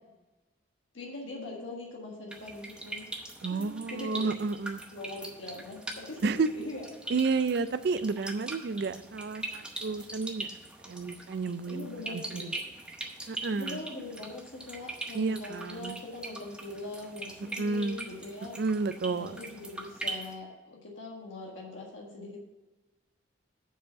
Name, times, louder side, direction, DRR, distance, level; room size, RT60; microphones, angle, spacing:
voice 1, 0.9-3.1 3.5-4.5 4.9-6.9 11.7-12.6 13.4-18.5 19.2-22.4, left 2 dB, 85° left, -2 dB, 1.6 m, -42 dB
sound 1, 2.3-20.3, right 2 dB, 5° right, 0.8 m, -42 dB
voice 2, 3.4-4.8 6.2-6.5 7.1-10.5 10.8-12.5 13.3-13.8 15.1-15.9 17.6-18.0 18.6-19.4, right 4 dB, 55° right, 13 dB, 0.4 m, -31 dB
7.0 x 5.0 x 7.0 m, 1.1 s
head